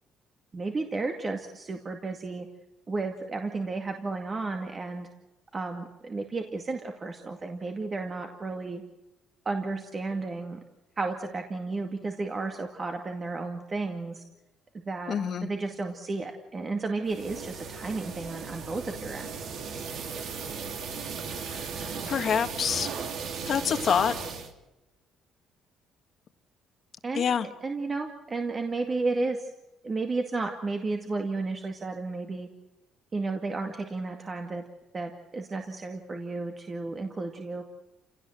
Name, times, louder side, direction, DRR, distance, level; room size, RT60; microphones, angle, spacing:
voice 1, 0.5-2.5 2.9-5.1 5.5-8.8 9.5-10.6 11.0-14.2 14.7-19.3 27.0-27.4 27.6-29.5 29.8-32.5 33.1-34.6 34.9-37.6, right 3 dB, 25° right, 4 dB, 2.2 m, -33 dB
voice 2, 15.1-15.5 21.3-22.9 23.5-24.1 27.2-27.5, left 7 dB, 45° left, 8 dB, 1.8 m, -27 dB
sound 1, 17.1-24.5, right 5 dB, 60° right, 3.3 m, -36 dB
29.0 x 17.5 x 7.8 m, 1.0 s
cardioid pair, 140°, 0 cm